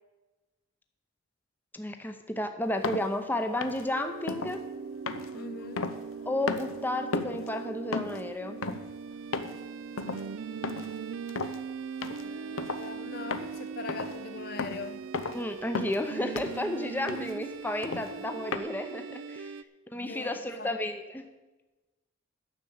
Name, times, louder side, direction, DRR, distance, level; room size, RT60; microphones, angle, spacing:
voice 1, 1.7-4.6 6.3-8.6 15.3-19.5 19.9-21.3, left 1 dB, 10° left, 0.7 m, -32 dB
sound 1, 2.8-3.1 3.6-3.9 4.3-4.6 5.1-6.2 6.5-6.8 7.1-7.5 7.9-8.2 8.6-8.9 9.3-9.6 10.0-10.2 10.6-11.0 11.3-11.6 12.0-12.2 12.6-12.9 13.3-13.6 13.9-14.2 14.6-14.8 15.1-15.4 15.7-16.0 16.4-16.6 17.1-17.3 17.8-18.1 18.5-18.6, left 4 dB, 85° left, 0.8 m, -34 dB
sound 2, 3.9-19.6, right 5 dB, 75° right, 0.4 m, -40 dB
voice 2, 5.3-5.9 12.2-15.1 20.0-20.7, left 4 dB, 45° left, 0.7 m, -42 dB
10.0 x 6.9 x 8.6 m
head